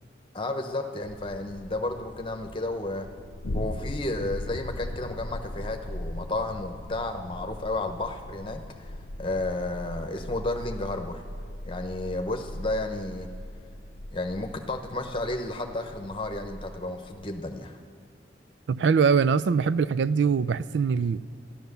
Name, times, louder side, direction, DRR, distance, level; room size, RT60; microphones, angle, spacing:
voice 1, 0.3-3.1 3.5-11.2 11.6-13.3 14.1-17.8, left 2 dB, 30° left, 5 dB, 0.9 m, -32 dB
sound 1, 1.0-17.6, left 1 dB, 80° left, 0.7 m, -39 dB
voice 2, 18.7-21.2, right 6 dB, 85° right, 16 dB, 0.4 m, -22 dB
13.5 x 12.0 x 6.8 m, 2.4 s
head